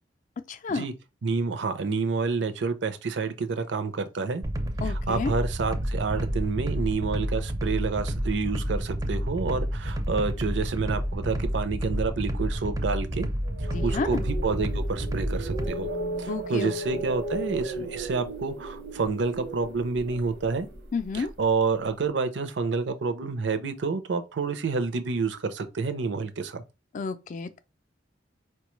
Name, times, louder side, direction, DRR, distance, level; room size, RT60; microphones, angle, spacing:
voice 1, 0.5-0.8 4.8-5.3 13.7-14.3 16.3-17.0 20.9-21.3 26.9-27.6, left 4 dB, 45° left, 0.4 m, -31 dB
voice 2, 1.2-4.4 4.8-13.3 13.6-15.9 16.2-20.7 21.1-26.6, right 4 dB, 70° right, 0.5 m, -29 dB
sound 1, 4.4-15.7, equal, 20° right, 0.4 m, -30 dB
sound 2, 13.4-21.5, right 2 dB, 90° right, 1.0 m, -35 dB
4.4 x 2.2 x 3.0 m
head